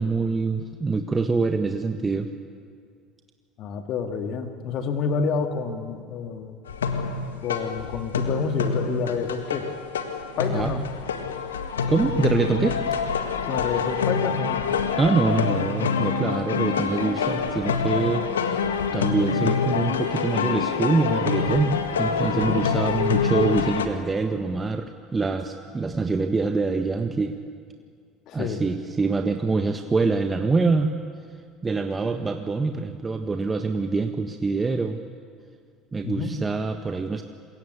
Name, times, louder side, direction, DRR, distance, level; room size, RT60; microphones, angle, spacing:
voice 1, 0.0-2.3 10.5-10.7 11.9-12.8 15.0-18.3 18.9-27.3 28.3-30.9 31.6-35.0 35.9-37.2, right 4 dB, 25° right, 6 dB, 1.5 m, -25 dB
voice 2, 3.6-6.6 7.4-9.7 10.4-10.8 13.4-14.6 22.3-22.6 28.3-28.6 36.0-36.3, left 5 dB, 55° left, 6 dB, 2.5 m, -28 dB
sound 1, 6.7-23.9, left 5 dB, 90° left, 1.7 m, -26 dB
27.5 x 22.0 x 8.3 m, 2.2 s
hypercardioid pair, 70°, 0 cm